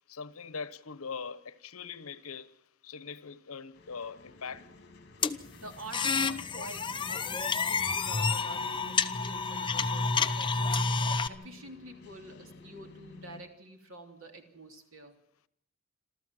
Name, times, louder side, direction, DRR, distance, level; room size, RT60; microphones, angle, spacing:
voice 1, 0.1-4.8, left 5 dB, 85° left, 1.0 m, -42 dB
sound 1, 3.7-13.4, left 2 dB, 50° left, 2.7 m, -50 dB
sound 2, 5.2-11.3, left 4 dB, 20° left, 0.8 m, -29 dB
voice 2, 5.5-10.8 11.3-15.1, right 2 dB, 70° right, 3.3 m, -48 dB
27.5 x 13.5 x 7.6 m
head